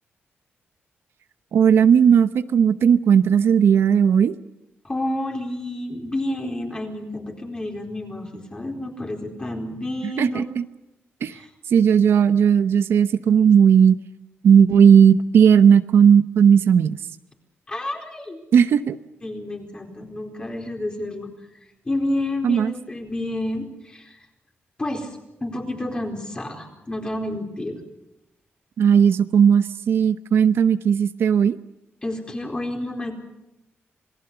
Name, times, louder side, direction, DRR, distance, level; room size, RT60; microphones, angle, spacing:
voice 1, 1.5-4.4 10.2-10.6 11.2-11.4 11.7-14.0 14.4-17.0 18.5-19.0 22.4-22.7 28.8-31.6, right 7 dB, 75° right, 11 dB, 0.9 m, -16 dB
voice 2, 4.8-10.4 11.3-11.5 17.7-18.4 19.2-21.3 21.8-24.2 24.8-27.8 32.0-33.1, left 1 dB, 20° left, 1 dB, 4.4 m, -30 dB
28.0 x 19.0 x 6.9 m, 0.93 s
wide cardioid pair, 125°, 4 cm